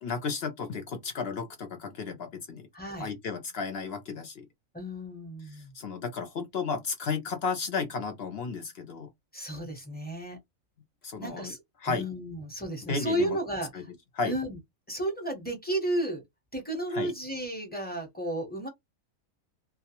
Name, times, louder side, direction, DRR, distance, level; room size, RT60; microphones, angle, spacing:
voice 1, 0.0-2.7 3.0-4.5 5.5-9.1 11.0-11.5 11.8-12.0 12.9-13.4 13.7-13.8 14.1-14.3 16.9-17.1, left 4 dB, 60° left, 0.7 m, -33 dB
voice 2, 2.7-3.1 4.7-5.7 9.3-10.4 11.2-13.7 14.2-14.6 14.9-16.2 16.5-18.7, right 1 dB, 10° left, 0.6 m, -33 dB
2.3 x 2.2 x 2.8 m
omnidirectional pair, 1.5 m